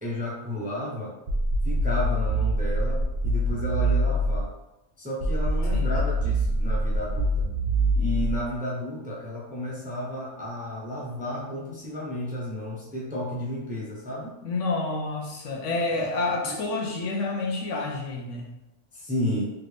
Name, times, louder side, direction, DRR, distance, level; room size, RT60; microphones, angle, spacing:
voice 1, 0.0-1.1 1.6-4.5 5.0-7.5 7.9-14.3 15.9-16.1 16.4-16.6 18.9-19.5, left 1 dB, 10° right, -6 dB, 0.5 m, -32 dB
sound 1, 1.3-4.5 5.2-8.5, right 1 dB, 50° right, 0.8 m, -25 dB
voice 2, 14.4-18.5, left 3 dB, 80° left, 1 dB, 1.0 m, -29 dB
3.3 x 2.6 x 3.2 m, 0.95 s
omnidirectional pair, 1.3 m